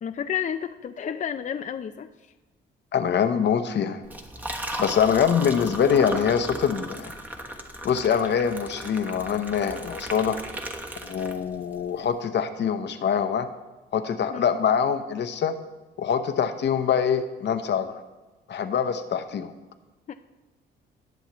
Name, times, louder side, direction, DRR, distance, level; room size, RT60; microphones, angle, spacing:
voice 1, 0.0-2.3 14.3-14.6 20.1-20.2, left 8 dB, 40° left, 7 dB, 0.5 m, -31 dB
voice 2, 2.9-4.0 4.8-7.1 7.8-10.4 11.0-13.5 13.9-15.6 16.0-18.0 18.5-19.5, left 7 dB, 60° left, 9 dB, 0.9 m, -24 dB
Liquid, 4.0-11.7, right 1 dB, 10° right, 1.1 m, -36 dB
19.5 x 7.1 x 3.1 m, 1.2 s
cardioid pair, 90°, 20 cm